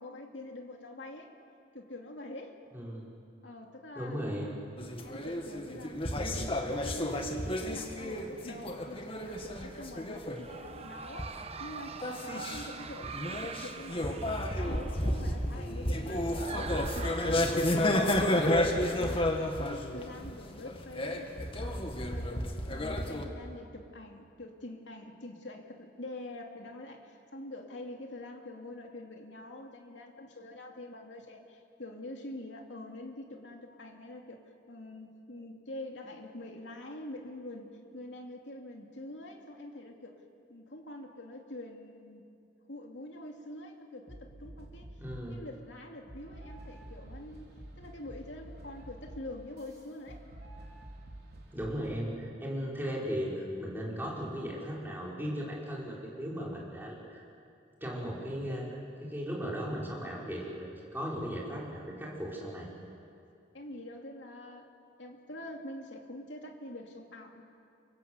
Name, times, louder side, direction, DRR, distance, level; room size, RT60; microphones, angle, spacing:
voice 1, 0.0-1.3 1.7-2.6 3.4-4.2 5.0-34.4 34.7-40.2 40.5-42.3 42.7-44.9 45.3-47.5 47.8-50.2 63.5-64.7 65.0-67.4, left 1 dB, 70° left, 2 dB, 2.9 m, -45 dB
voice 2, 2.7-3.1 3.9-4.6 45.0-45.4 51.5-57.2 57.8-62.7, equal, 10° right, -4 dB, 6.0 m, -37 dB
sound 1, 4.8-10.8 11.1-11.5 11.9-23.3, left 1 dB, 30° left, 2.1 m, -32 dB
sound 2, 9.3-18.5, right 5 dB, 35° right, 1.1 m, -45 dB
sound 3, 44.1-45.4 46.1-52.1, right 1 dB, 60° right, 4.5 m, -49 dB
29.0 x 24.0 x 8.2 m, 2.5 s
head